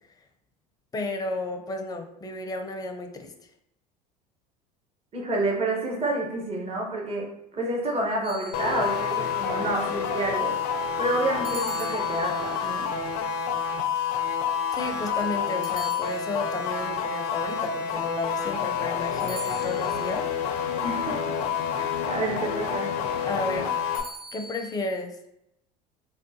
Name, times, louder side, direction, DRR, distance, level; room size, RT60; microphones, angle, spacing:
voice 1, 0.9-3.3 14.7-20.3 23.3-23.8 24.3-25.2, left 2 dB, 20° left, 4 dB, 0.5 m, -32 dB
voice 2, 5.1-10.5 11.0-12.9 20.8-21.2 21.8-22.9, right 2 dB, 30° right, -1 dB, 0.9 m, -29 dB
sound 1, 8.2-9.2 11.4-12.7 15.6-16.7 19.2-20.2 23.9-24.7, right 2 dB, 75° right, 0.6 m, -41 dB
sound 2, 8.5-24.0, left 7 dB, 70° left, 0.4 m, -28 dB
3.6 x 2.2 x 2.7 m, 0.82 s
hypercardioid pair, 75°, 20 cm